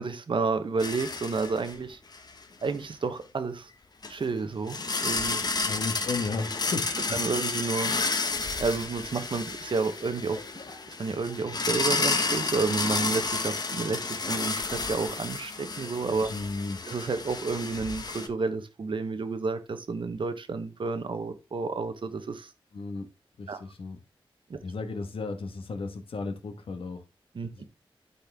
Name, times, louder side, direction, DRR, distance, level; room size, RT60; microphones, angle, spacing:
voice 1, 0.0-2.0 2.6-3.7 4.1-4.8 5.0-5.4 7.1-8.3 8.6-10.4 11.0-16.3 16.9-22.5 23.5-23.6 24.5-24.6 27.3-27.6, right 4 dB, 60° right, 1.1 m, -30 dB
sound 1, 0.8-1.8 2.1-2.3 4.0-4.1 4.7-18.3, left 3 dB, 45° left, 1.0 m, -31 dB
voice 2, 5.6-7.2 16.3-16.8 22.7-23.1 23.4-24.0 24.6-27.0, left 3 dB, 70° left, 1.4 m, -34 dB
12.0 x 4.2 x 3.5 m
wide cardioid pair, 100°, 10 cm